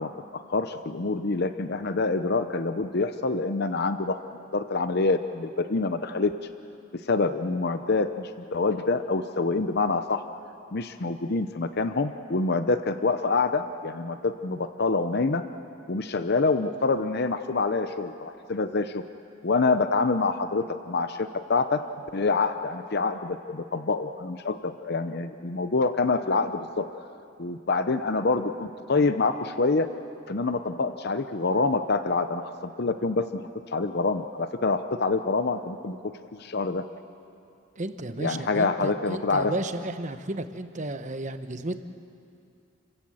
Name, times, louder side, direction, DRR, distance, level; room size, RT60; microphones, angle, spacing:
voice 1, 0.0-4.2 4.5-6.3 7.1-10.2 10.7-15.4 15.9-19.0 19.4-21.8 22.1-26.9 27.4-29.9 30.3-33.4 33.7-36.0 36.3-36.8 38.2-39.5, left 3 dB, 50° left, 9 dB, 0.8 m, -26 dB
voice 2, 37.8-41.8, right 2 dB, 35° right, 9 dB, 1.0 m, -33 dB
30.0 x 16.0 x 7.8 m, 2.5 s
head